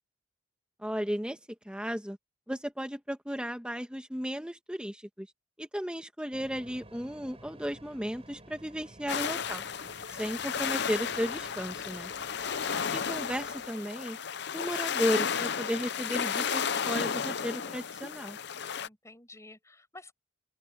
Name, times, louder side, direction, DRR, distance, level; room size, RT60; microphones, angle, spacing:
voice 1, 0.8-1.4 1.7-2.2 2.5-5.3 5.6-9.6 10.1-12.1 12.9-14.2 14.5-18.4, equal, 5° right, 1.9 m, -34 dB
sound 1, 6.3-13.7, right 1 dB, 30° right, 4.5 m, -53 dB
sound 2, 9.1-18.9, left 7 dB, 60° left, 0.7 m, -33 dB
voice 2, 18.8-20.1, left 2 dB, 15° left, 6.4 m, -51 dB
open air
head